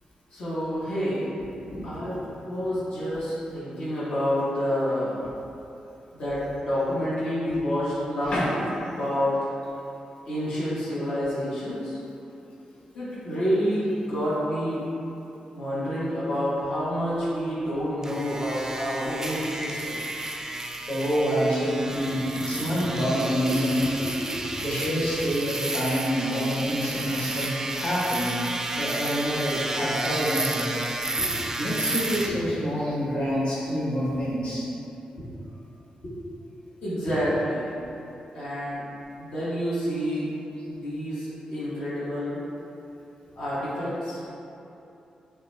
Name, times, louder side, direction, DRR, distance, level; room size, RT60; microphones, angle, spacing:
voice 1, 0.3-1.5 1.7-5.2 6.1-8.6 8.9-9.5 10.2-12.0 12.9-14.8 15.6-20.0 22.4-24.4 25.0-25.1 31.1-31.3 35.1-35.2 36.0-36.1 36.8-37.7 38.3-38.8 39.1-40.3 40.6-42.4 43.3-44.2, equal, 75° left, -11 dB, 1.1 m, -29 dB
sound 1, 18.0-32.3, right 2 dB, 20° right, 0.4 m, -32 dB
voice 2, 20.9-23.8 24.6-30.7 31.6-34.6, equal, 55° left, -8 dB, 1.3 m, -27 dB
5.7 x 2.3 x 3.2 m, 2.9 s
cardioid pair, 80°, 2 cm